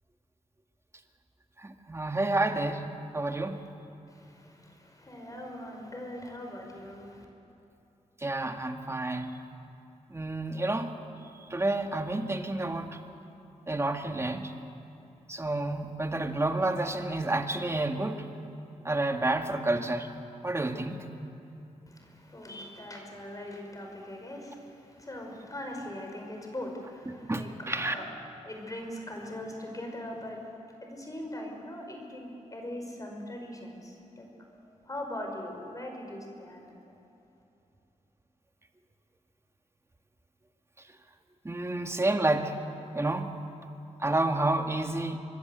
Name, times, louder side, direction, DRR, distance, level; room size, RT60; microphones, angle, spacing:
voice 1, 1.6-3.6 8.2-9.4 10.1-11.0 11.3-13.0 13.7-14.5 15.3-18.2 18.8-20.1 20.4-21.1 27.0-28.0 41.4-42.6 42.9-43.3 44.0-45.2, right 2 dB, 20° right, 5 dB, 1.8 m, -30 dB
voice 2, 4.1-7.3 21.9-28.1 28.4-30.5 30.8-36.7, left 1 dB, 25° left, 1 dB, 5.6 m, -41 dB
25.0 x 21.5 x 8.0 m, 2.9 s
cardioid pair, 70°, 13 cm